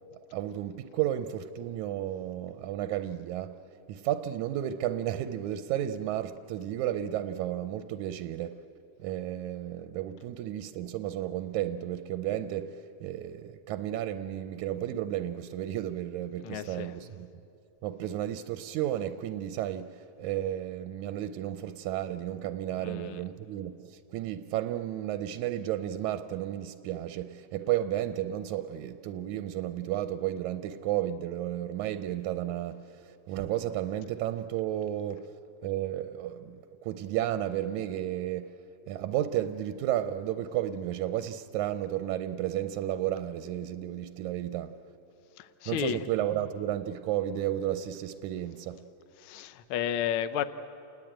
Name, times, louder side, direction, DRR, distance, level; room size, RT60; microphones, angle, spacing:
voice 1, 0.3-3.5 3.9-8.6 9.0-17.3 17.8-35.3 35.6-38.5 38.9-44.7 45.7-48.8, right 12 dB, 90° right, 2.1 m, -33 dB
voice 2, 16.4-16.9 22.8-23.2 45.4-46.0 49.2-50.4, left 10 dB, 65° left, 1.3 m, -32 dB
29.0 x 20.0 x 8.9 m
omnidirectional pair, 3.3 m